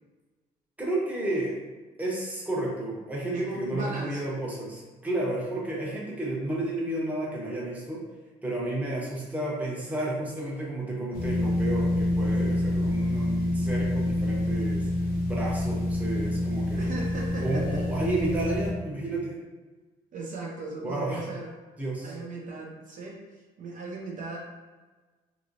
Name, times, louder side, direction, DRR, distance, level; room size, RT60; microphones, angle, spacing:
voice 1, 0.8-1.6 2.0-8.0 8.4-14.9 15.3-16.9 17.4-19.4 20.8-21.2 21.8-22.1, right 1 dB, 10° right, -5 dB, 0.9 m, -31 dB
voice 2, 3.3-4.4 16.7-17.8 20.1-21.5 22.0-24.4, right 2 dB, 50° right, -1 dB, 0.6 m, -37 dB
sound 1, 11.1-18.7, left 1 dB, 60° left, 0.7 m, -27 dB
2.9 x 2.9 x 2.6 m, 1.3 s
cardioid pair, 110°, 17 cm